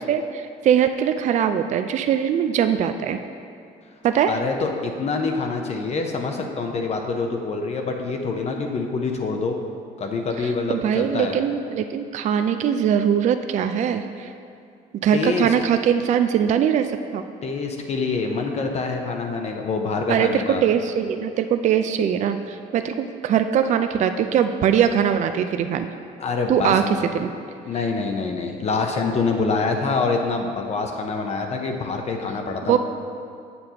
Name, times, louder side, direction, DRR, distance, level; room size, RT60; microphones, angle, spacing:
voice 1, 0.1-3.2 4.0-4.4 10.7-14.3 15.0-17.2 20.1-25.9 26.5-27.3 32.7-32.8, right 8 dB, 45° right, 8 dB, 0.4 m, -21 dB
voice 2, 4.3-9.6 10.0-11.4 15.1-15.5 17.4-20.6 26.2-27.0 27.6-32.8, left 4 dB, 40° left, 3 dB, 0.7 m, -25 dB
7.7 x 6.9 x 2.9 m, 2.4 s
cardioid pair, 110°, 17 cm